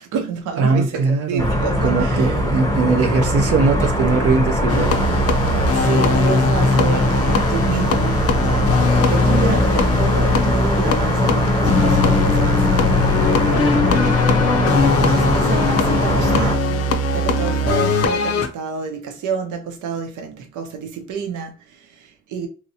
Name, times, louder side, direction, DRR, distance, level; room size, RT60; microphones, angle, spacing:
voice 1, 0.0-2.3 5.7-13.0 13.4-16.7 17.1-22.5, right 6 dB, 80° right, 0.8 m, -29 dB
voice 2, 0.6-1.5 1.8-5.0, right 5 dB, 50° right, 0.5 m, -20 dB
sound 1, 1.4-16.6, left 1 dB, 10° left, 0.7 m, -20 dB
sound 2, 4.7-18.5, left 3 dB, 55° left, 0.6 m, -20 dB
3.1 x 2.8 x 2.7 m
cardioid pair, 90°, 30 cm